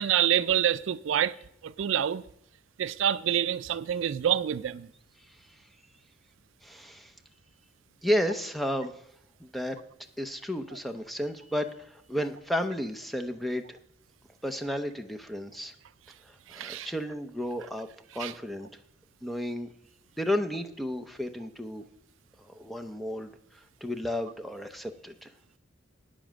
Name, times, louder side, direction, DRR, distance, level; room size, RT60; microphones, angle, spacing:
voice 1, 0.0-1.3 1.6-2.2 2.8-4.9 16.5-16.9 18.2-18.3, right 10 dB, 70° right, 0.4 m, -27 dB
voice 2, 6.6-7.1 8.0-9.0 9.4-9.8 10.2-13.8 14.4-15.7 16.2-17.9 18.1-18.7 19.2-19.7 20.2-21.8 22.4-25.3, equal, ahead, 0.6 m, -32 dB
9.0 x 7.1 x 7.4 m
head